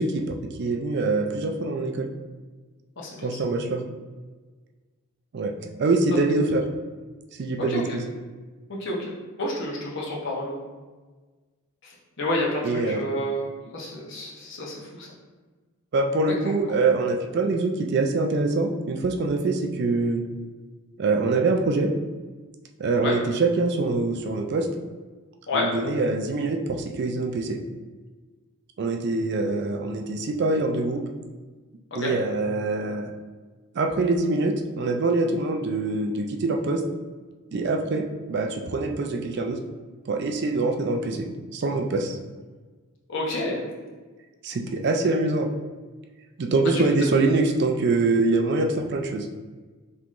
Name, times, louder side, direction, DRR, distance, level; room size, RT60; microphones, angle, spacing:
voice 1, 0.0-2.1 3.2-3.8 5.3-5.5 5.8-6.6 7.4-8.0 12.6-13.0 15.9-20.2 21.0-21.9 22.8-24.7 25.5-27.6 28.8-31.0 32.0-33.1 33.8-36.8 37.5-39.6 40.1-41.3 41.5-42.2 44.4-45.5 46.4-49.3, right 3 dB, 50° right, 3 dB, 0.4 m, -24 dB
voice 2, 3.0-3.3 7.7-7.8 8.7-9.0 9.4-10.7 11.8-11.9 12.2-13.5 13.7-15.1 23.0-23.2 25.5-25.7 32.0-32.1 43.1-43.6, left 1 dB, 55° left, -4 dB, 1.0 m, -29 dB
5.4 x 3.0 x 2.5 m, 1.4 s
head